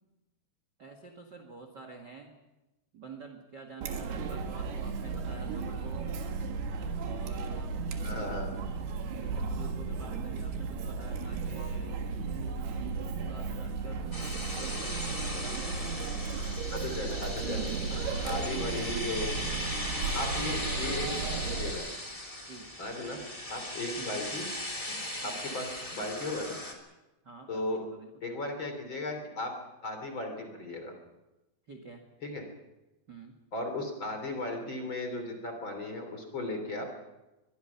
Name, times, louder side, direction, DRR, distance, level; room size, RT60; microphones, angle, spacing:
voice 1, 0.8-2.3 2.9-6.1 7.0-7.7 8.5-8.8 9.1-12.2 13.3-15.6 17.9-18.6 19.4-19.7 22.5-22.7 24.0-24.2 25.2-25.5 27.2-28.1 31.7-32.0 33.1-33.4, right 4 dB, 40° right, 5 dB, 1.8 m, -48 dB
Chatter, 3.8-21.7, right 4 dB, 80° right, 3.7 m, -35 dB
voice 2, 8.0-8.5 16.7-19.4 20.1-21.9 22.8-23.2 23.5-24.5 24.9-25.0 25.2-26.6 27.5-27.8 28.2-29.6 29.8-30.9 32.2-32.5 33.5-36.9, left 2 dB, 30° left, 5 dB, 3.6 m, -36 dB
sound 1, 14.1-26.7, left 1 dB, 10° left, 2.7 m, -38 dB
23.0 x 22.0 x 5.8 m, 1.0 s
omnidirectional pair, 4.6 m